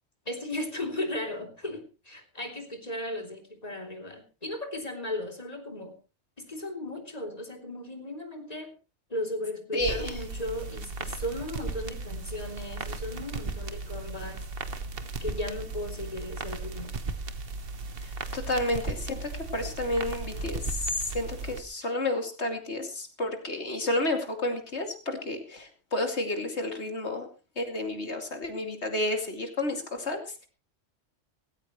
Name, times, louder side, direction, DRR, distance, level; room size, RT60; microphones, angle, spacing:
voice 1, 0.2-6.0 6.4-8.7 9.1-14.5 15.2-17.0, left 1 dB, 35° left, 3 dB, 3.3 m, -36 dB
voice 2, 9.7-10.1 18.3-27.3 27.6-30.5, left 1 dB, 65° left, 5 dB, 2.9 m, -31 dB
sound 1, 9.8-21.6, right 3 dB, 55° right, 1.4 m, -36 dB
18.0 x 16.5 x 3.1 m, 0.33 s
omnidirectional pair, 1.2 m